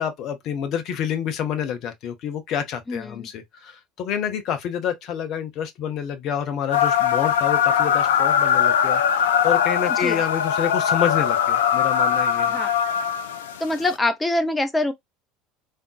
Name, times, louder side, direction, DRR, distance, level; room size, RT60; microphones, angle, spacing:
voice 1, 0.0-12.6, left 8 dB, 45° left, 0.7 m, -28 dB
voice 2, 2.9-3.3 9.9-10.2 12.5-12.7 13.6-14.9, left 2 dB, 15° left, 0.7 m, -24 dB
sound 1, 6.7-13.9, left 8 dB, 65° left, 0.4 m, -21 dB
3.6 x 2.6 x 2.4 m
figure-of-eight pair, 70°, 0 cm